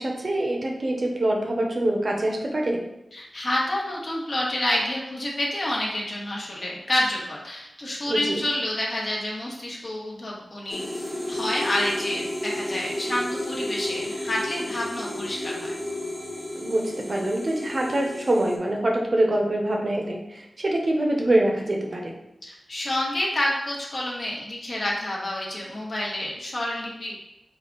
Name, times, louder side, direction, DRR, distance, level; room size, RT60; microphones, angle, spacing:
voice 1, 0.0-2.8 8.1-8.4 16.6-22.1, right 1 dB, 50° right, 0 dB, 0.7 m, -25 dB
voice 2, 3.1-15.8 22.4-27.1, left 1 dB, 50° left, -3 dB, 1.2 m, -28 dB
sound 1, 10.7-18.6, left 1 dB, 5° right, 1.0 m, -32 dB
5.2 x 2.4 x 3.8 m, 0.88 s
wide cardioid pair, 85°, 0 cm